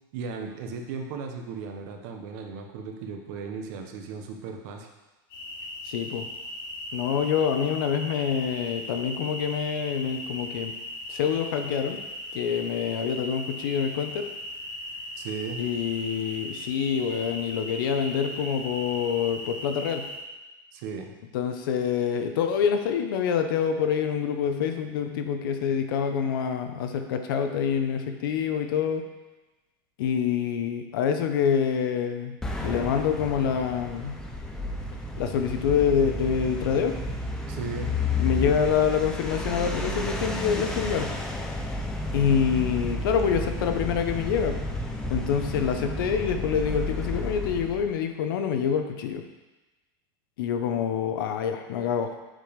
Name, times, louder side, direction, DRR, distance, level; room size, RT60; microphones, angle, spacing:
voice 1, 0.1-4.9 15.2-15.6 20.7-21.1 37.5-38.0, right 5 dB, 50° right, 3 dB, 1.0 m, -36 dB
sound 1, 5.3-20.2, left 1 dB, 85° left, 3.0 m, -38 dB
voice 2, 5.8-6.3 6.9-10.7 11.1-12.0 12.3-14.3 15.6-20.1 21.3-29.1 30.0-32.4 32.6-34.1 35.2-37.0 38.2-41.1 42.1-44.6 45.1-49.2 50.4-52.1, left 7 dB, 65° left, 6 dB, 0.9 m, -26 dB
sound 2, 32.4-47.9, left 2 dB, 5° left, 0.5 m, -32 dB
7.5 x 5.2 x 5.2 m, 1.1 s
supercardioid pair, 180°, 12 cm